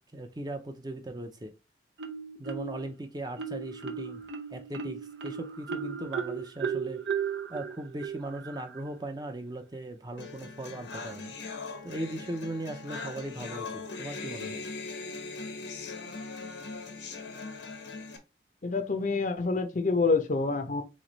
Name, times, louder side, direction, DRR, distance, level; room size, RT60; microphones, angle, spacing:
voice 1, 0.0-1.5 2.4-4.2 4.5-7.0 7.5-11.3 11.8-14.6, right 1 dB, 25° right, 0.6 m, -38 dB
Marimba xylophone, 2.0-2.9 3.4-8.9, right 7 dB, 75° right, 0.6 m, -35 dB
sound 1, 10.2-18.2, left 4 dB, 85° left, 1.0 m, -40 dB
voice 2, 18.6-20.8, left 4 dB, 45° left, 0.6 m, -27 dB
4.0 x 3.2 x 3.9 m
head